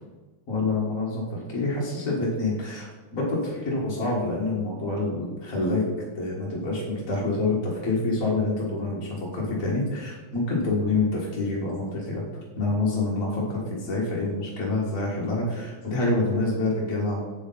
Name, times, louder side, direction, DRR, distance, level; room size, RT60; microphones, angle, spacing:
voice 1, 0.5-5.8 6.1-17.2, left 2 dB, 40° left, -5 dB, 1.9 m, -27 dB
8.2 x 7.8 x 4.0 m, 1.3 s
omnidirectional pair, 2.4 m